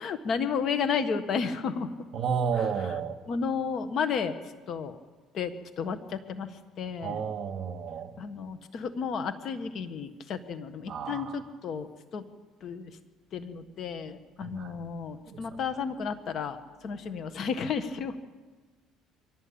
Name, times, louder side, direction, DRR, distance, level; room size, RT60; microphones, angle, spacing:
voice 1, 0.0-1.9 2.6-2.7 3.3-4.4 4.7-5.0 5.3-6.5 6.8-7.2 8.2-12.2 12.6-12.9 13.3-16.6 16.8-18.2, left 6 dB, 50° left, 10 dB, 1.6 m, -32 dB
voice 2, 2.1-3.2 7.0-8.1 10.9-11.4 14.4-14.7 15.3-15.6, right 6 dB, 45° right, 6 dB, 2.2 m, -32 dB
23.5 x 16.5 x 8.8 m, 1.3 s
cardioid pair, 130°, 0 cm